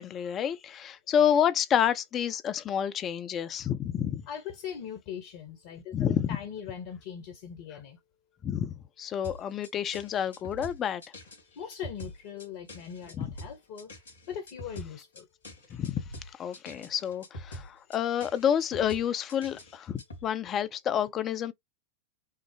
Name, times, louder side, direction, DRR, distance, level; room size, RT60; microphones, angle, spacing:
voice 1, 0.0-4.2 5.9-6.3 8.4-11.0 13.1-13.3 15.7-16.0 16.4-21.5, left 9 dB, 30° left, 0.7 m, -29 dB
voice 2, 4.3-8.0 11.5-13.9 14.3-15.3, left 8 dB, 50° left, 1.2 m, -40 dB
sound 1, 9.2-20.3, left 1 dB, 75° left, 2.1 m, -45 dB
5.7 x 2.0 x 3.1 m
figure-of-eight pair, 90°, 0 cm